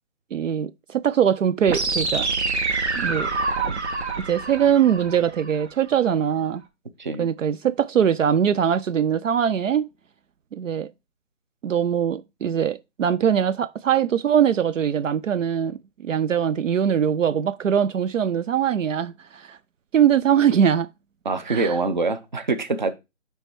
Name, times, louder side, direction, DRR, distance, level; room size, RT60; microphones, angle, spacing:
voice 1, 0.3-2.3 3.0-3.3 3.7-3.8 4.2-6.6 7.2-9.9 10.5-10.9 11.6-19.6 19.9-20.9 21.5-21.8, right 8 dB, 75° right, 0.5 m, -22 dB
sound 1, 1.7-5.7, right 3 dB, 55° right, 1.4 m, -26 dB
voice 2, 21.2-22.9, right 3 dB, 35° right, 0.7 m, -24 dB
9.4 x 3.5 x 4.4 m
figure-of-eight pair, 160°, 39 cm